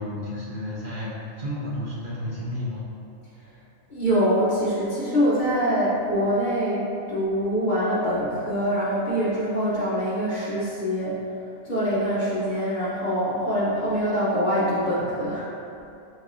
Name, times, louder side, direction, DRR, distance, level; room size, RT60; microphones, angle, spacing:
voice 1, 0.0-2.8, left 1 dB, 50° right, -8 dB, 0.7 m, -32 dB
voice 2, 3.9-11.2 11.6-15.5, equal, 45° left, -9 dB, 0.8 m, -24 dB
4.5 x 3.0 x 2.6 m, 2.7 s
omnidirectional pair, 1.2 m